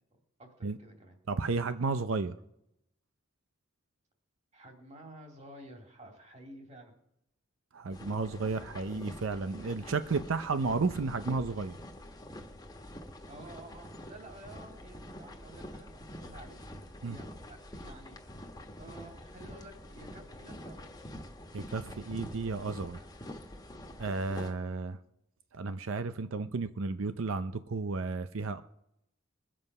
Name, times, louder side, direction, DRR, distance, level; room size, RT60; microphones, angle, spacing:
voice 1, 0.4-1.2 4.5-6.9 13.3-16.6 17.0-18.2 18.8-20.8, right 1 dB, 35° right, 3 dB, 2.5 m, -51 dB
voice 2, 1.3-2.4 7.7-11.8 17.0-17.2 21.5-23.0 24.0-25.0 25.5-28.6, right 4 dB, 85° right, 11 dB, 0.6 m, -33 dB
sound 1, 7.9-24.5, left 1 dB, 20° left, 1.3 m, -46 dB
21.5 x 7.6 x 5.4 m, 0.81 s
head